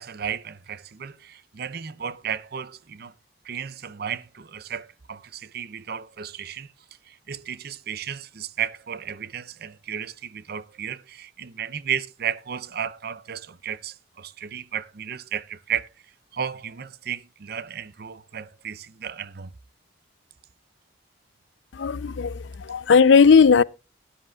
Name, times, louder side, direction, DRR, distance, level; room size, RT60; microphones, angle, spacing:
voice 1, 0.0-3.1 3.4-6.7 7.1-15.9 16.3-19.5, right 8 dB, 55° right, 0.6 m, -34 dB
voice 2, 21.7-23.6, left 5 dB, 80° left, 0.5 m, -17 dB
18.0 x 10.0 x 2.3 m
head